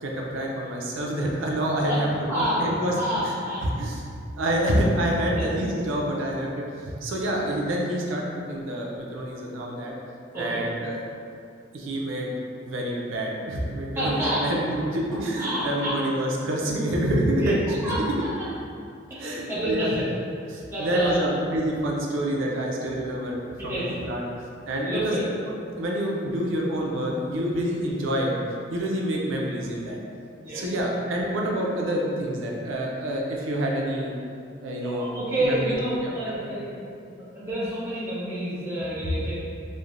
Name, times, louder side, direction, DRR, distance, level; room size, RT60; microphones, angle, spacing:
voice 1, 0.0-2.1 2.3-3.3 3.6-9.9 10.4-11.0 11.7-12.3 12.7-18.1 19.2-20.1 20.5-24.2 24.7-28.4 28.7-30.0 30.5-34.1 34.6-35.1 35.4-36.1 36.4-36.5 39.0-39.1, right 1 dB, 85° right, -1 dB, 0.4 m, -27 dB
voice 2, 2.3-2.6 2.9-3.6 5.3-5.7 10.3-10.6 14.0-14.5 15.4-15.9 17.4-18.0 18.4-18.5 19.1-20.1 20.7-21.2 23.6-23.9 24.8-25.2 30.4-30.8 34.8-36.8 37.3-39.4, right 1 dB, 10° right, -11 dB, 0.7 m, -29 dB
3.1 x 2.1 x 2.4 m, 2.5 s
head